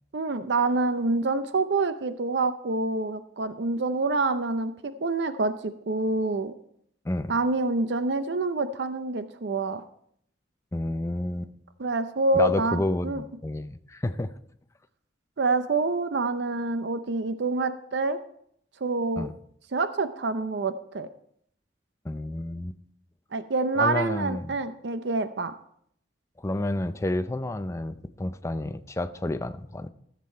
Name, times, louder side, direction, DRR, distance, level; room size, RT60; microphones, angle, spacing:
voice 1, 0.1-6.5 7.3-9.8 11.8-13.2 15.4-18.2 18.8-19.3 19.7-21.1 23.3-25.5, right 3 dB, 70° right, 11 dB, 0.6 m, -27 dB
voice 2, 10.7-11.5 12.3-14.4 19.2-19.3 22.0-22.8 23.8-24.6 26.4-29.9, left 1 dB, 15° left, 12 dB, 0.4 m, -30 dB
14.0 x 7.5 x 4.3 m, 0.69 s
head